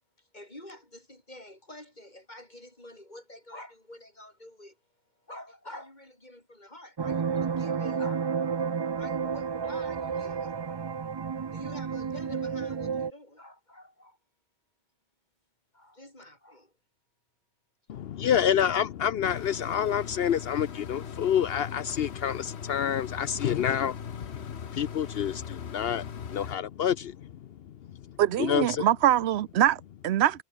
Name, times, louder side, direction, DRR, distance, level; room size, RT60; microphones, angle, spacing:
voice 1, 0.2-4.8 5.2-8.3 8.9-10.6 11.5-14.2 15.7-16.7 18.2-18.3, left 1 dB, 45° left, 5.8 m, -47 dB
sound 1, 7.0-13.1, right 6 dB, 40° right, 0.4 m, -31 dB
voice 2, 17.9-26.0 26.3-27.3 28.4-28.8, left 9 dB, 70° left, 0.9 m, -28 dB
sound 2, 19.2-26.6, left 7 dB, 85° left, 1.4 m, -40 dB
voice 3, 28.2-30.4, right 12 dB, 90° right, 0.9 m, -24 dB
omnidirectional pair, 1.1 m